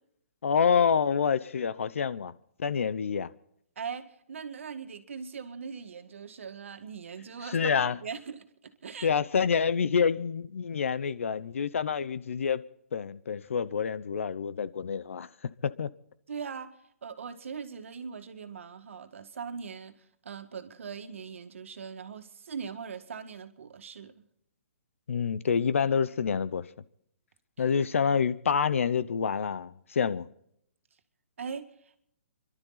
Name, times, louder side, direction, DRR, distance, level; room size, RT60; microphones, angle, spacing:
voice 1, 0.4-2.3 2.6-3.3 7.5-8.0 9.0-12.6 12.9-15.3 15.6-15.9 25.1-26.7 27.6-30.3, left 6 dB, 70° left, 0.9 m, -27 dB
voice 2, 3.8-9.1 16.3-16.7 17.0-24.2 31.4-31.7, right 6 dB, 65° right, 1.9 m, -40 dB
29.5 x 12.0 x 4.0 m
hypercardioid pair, 170°, 8 cm